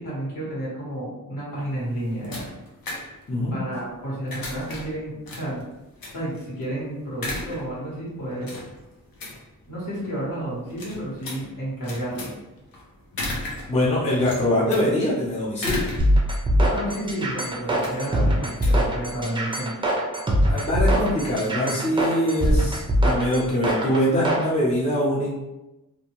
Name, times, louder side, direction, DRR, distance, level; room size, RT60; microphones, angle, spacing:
voice 1, 0.0-2.4 3.5-5.6 6.1-8.5 9.7-12.3 16.6-19.8, right 1 dB, 65° left, -7 dB, 1.5 m, -31 dB
sound 1, 1.6-19.6, left 2 dB, 80° left, 0.8 m, -37 dB
voice 2, 13.7-15.8 20.4-25.3, left 1 dB, 20° left, -7 dB, 0.8 m, -23 dB
sound 2, 16.0-24.5, equal, 15° right, 0.5 m, -22 dB
2.5 x 2.3 x 3.0 m, 0.99 s
wide cardioid pair, 115°, 35 cm